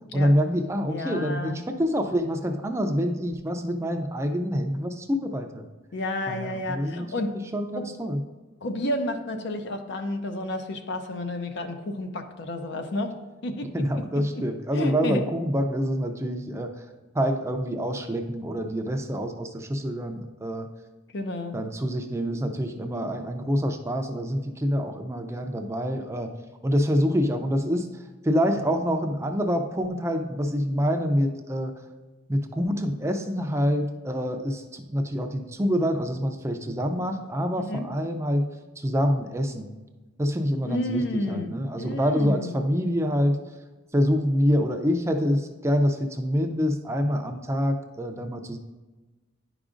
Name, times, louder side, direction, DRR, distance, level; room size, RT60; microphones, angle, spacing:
voice 1, 0.1-5.7 6.3-7.1 7.5-8.2 13.6-16.7 17.1-20.7 21.5-26.3 26.6-27.9 28.2-31.7 32.3-38.5 38.8-39.7 40.2-43.4 43.9-48.6, equal, 15° right, 4 dB, 0.4 m, -26 dB
voice 2, 0.9-1.6 5.9-7.3 7.8-7.9 8.6-13.1 13.4-13.8 14.7-15.2 21.1-21.6 37.6-37.9 40.7-42.5, left 1 dB, 60° left, 6 dB, 0.6 m, -31 dB
10.5 x 4.9 x 2.5 m, 1.2 s
head